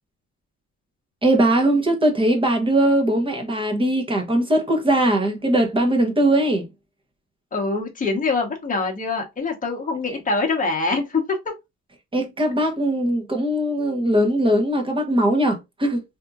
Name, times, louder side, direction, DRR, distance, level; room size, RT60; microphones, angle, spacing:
voice 1, 1.2-6.7 12.1-16.0, right 1 dB, 15° right, 1.0 m, -20 dB
voice 2, 7.5-11.4, left 3 dB, 25° left, 1.1 m, -24 dB
3.4 x 2.7 x 2.4 m
cardioid pair, 115°, 32 cm